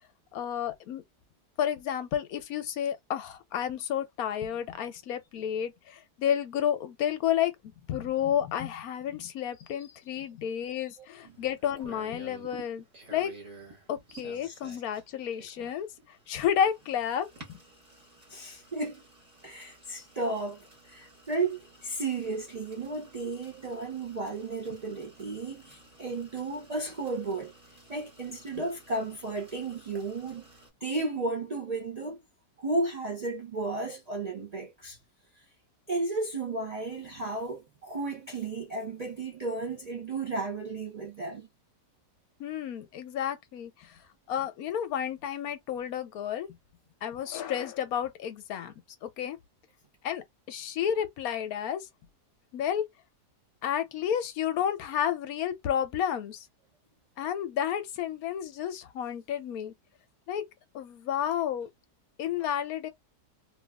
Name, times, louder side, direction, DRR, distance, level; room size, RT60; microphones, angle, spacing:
voice 1, 0.3-1.0 1.6-7.5 7.9-12.8 13.1-13.3 13.9-15.9 16.3-17.6 42.4-44.0 44.3-46.5 47.0-48.7 49.0-49.4 50.0-51.9 52.5-52.9 53.6-56.5 57.2-59.7 60.3-60.5 60.7-61.7 62.2-62.9, left 9 dB, 70° left, 1.0 m, -31 dB
sound 1, 11.1-30.7, right 2 dB, 25° right, 1.1 m, -53 dB
voice 2, 14.4-14.8 18.3-19.0 19.4-27.5 27.9-30.4 30.8-32.2 32.6-35.0 35.9-41.5, right 3 dB, 75° right, 0.3 m, -33 dB
3.0 x 2.3 x 2.2 m
omnidirectional pair, 1.7 m